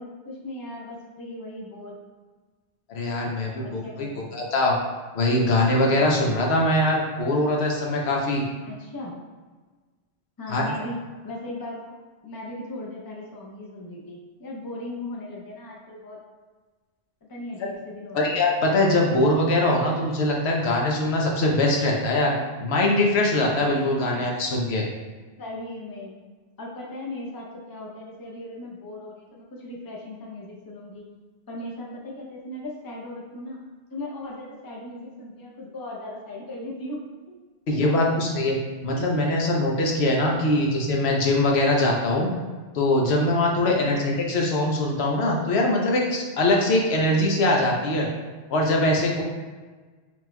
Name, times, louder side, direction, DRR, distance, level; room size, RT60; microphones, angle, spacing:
voice 1, 0.0-2.0 3.5-4.5 8.7-9.1 10.4-10.9 11.2-12.0 12.2-16.2 17.3-18.3 24.0-24.3 25.4-26.2 26.6-31.1 31.5-33.6 33.9-37.0 37.8-38.4 40.4-40.7 43.7-44.1, left 1 dB, 25° left, -2 dB, 0.6 m, -38 dB
voice 2, 2.9-4.1 4.3-4.8 5.1-8.4 10.5-10.6 17.6-17.7 18.1-22.3 22.6-24.8 37.7-38.6 38.8-42.3 42.7-48.1 48.5-49.2, left 1 dB, 75° left, -1 dB, 1.0 m, -22 dB
5.8 x 3.0 x 2.2 m, 1.4 s
omnidirectional pair, 1.1 m